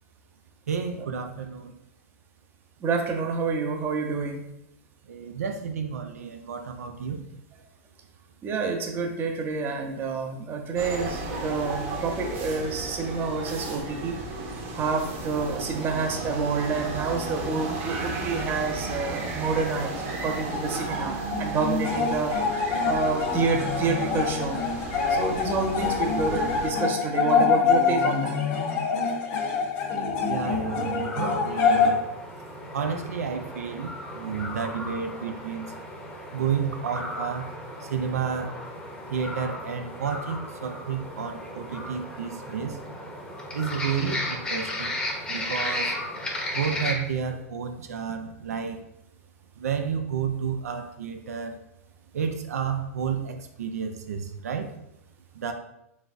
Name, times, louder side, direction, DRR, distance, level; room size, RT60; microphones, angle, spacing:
voice 1, 0.7-1.7 5.1-7.2 30.3-32.0 32.7-35.7 36.3-37.5 37.8-38.5 39.1-42.8 43.5-44.9 45.3-46.0 46.5-48.8 49.6-51.5 52.1-54.7 55.4-55.5, right 6 dB, 85° right, 6 dB, 0.5 m, -31 dB
voice 2, 2.8-4.4 8.4-14.2 14.7-22.5 22.7-24.6 25.1-28.4, right 4 dB, 25° right, 4 dB, 0.6 m, -28 dB
sound 1, 10.8-26.7, right 2 dB, 55° right, 1.1 m, -34 dB
sound 2, 20.4-31.9, left 5 dB, 45° left, 0.9 m, -26 dB
sound 3, 30.4-46.9, left 1 dB, 10° left, 0.8 m, -35 dB
4.0 x 3.3 x 2.5 m, 0.82 s
hypercardioid pair, 120°, 8 cm